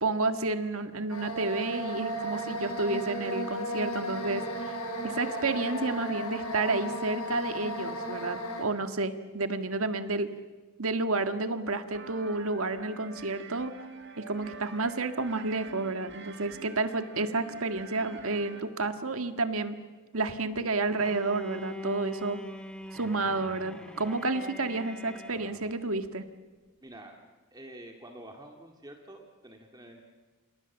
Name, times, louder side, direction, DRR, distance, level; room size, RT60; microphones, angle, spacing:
voice 1, 0.0-4.7 5.0-10.3 10.8-13.7 14.2-19.8 20.1-22.4 22.9-26.2, right 3 dB, 70° right, 9 dB, 1.7 m, -30 dB
sound 1, 1.1-8.6, equal, 85° left, 7.0 m, -35 dB
sound 2, 11.9-18.6, right 4 dB, 50° right, 2.1 m, -46 dB
Bowed string instrument, 21.0-25.9, left 1 dB, 5° left, 1.9 m, -42 dB
voice 2, 26.8-27.1 27.5-30.0, right 1 dB, 20° right, 3 dB, 2.1 m, -48 dB
28.5 x 28.0 x 7.3 m, 1.3 s
head